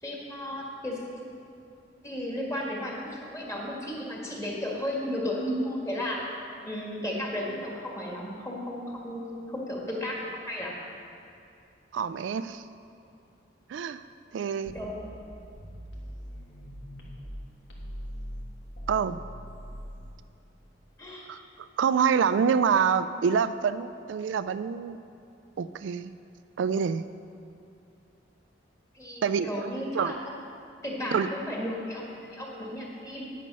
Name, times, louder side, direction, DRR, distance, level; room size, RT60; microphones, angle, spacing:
voice 1, 0.0-1.0 2.0-6.2 6.6-10.8 14.7-15.0 21.0-21.3 28.9-30.2 30.8-33.3, left 1 dB, 15° left, -3 dB, 1.7 m, -34 dB
voice 2, 11.9-12.6 13.7-14.0 14.3-14.7 18.9-19.2 21.3-25.0 25.6-26.1 26.6-27.0 29.2-29.7 29.9-30.1 31.1-31.3, right 6 dB, 75° right, 12 dB, 0.3 m, -26 dB
sound 1, 14.7-17.4 17.7-20.1, equal, 65° left, 1.6 m, -41 dB
9.6 x 8.4 x 5.5 m, 2.6 s
head